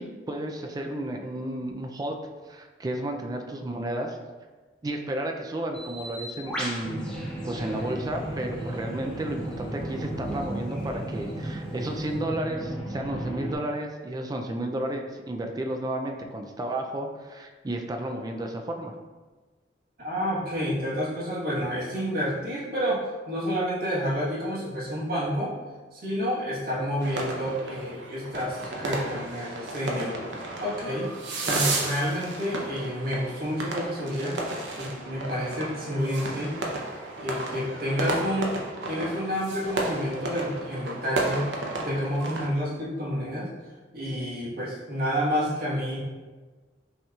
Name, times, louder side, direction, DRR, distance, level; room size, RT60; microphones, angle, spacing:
voice 1, 0.0-2.2 2.4-4.2 4.8-7.2 7.5-18.9, right 1 dB, 20° right, 3 dB, 0.3 m, -32 dB
Bird, 5.7-12.2, equal, 5° left, 0.7 m, -42 dB
sound 1, 6.8-13.5, right 1 dB, 30° left, 1.1 m, -34 dB
voice 2, 20.0-25.5 25.9-30.2 30.6-31.1 31.5-34.4 34.8-36.5 37.2-38.6 38.9-41.5 41.8-43.5 43.9-46.0, equal, 55° right, -7 dB, 1.2 m, -29 dB
sound 2, 27.0-42.5, right 2 dB, 80° right, 0.6 m, -33 dB
5.5 x 2.9 x 2.3 m, 1.4 s
head